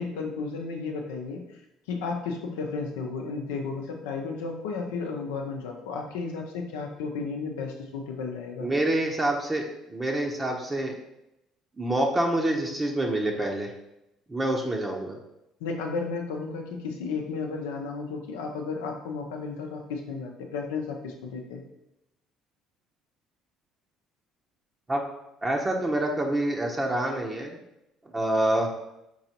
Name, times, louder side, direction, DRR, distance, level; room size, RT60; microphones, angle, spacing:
voice 1, 0.0-1.6 1.9-8.7 15.6-21.6, left 4 dB, 85° left, 2 dB, 0.6 m, -33 dB
voice 2, 8.6-10.9 11.8-13.7 14.3-15.2 24.9-25.0 25.4-27.6 28.1-28.7, right 1 dB, 25° right, 0 dB, 0.7 m, -26 dB
4.7 x 4.0 x 2.9 m, 0.87 s
hypercardioid pair, 65°, 0 cm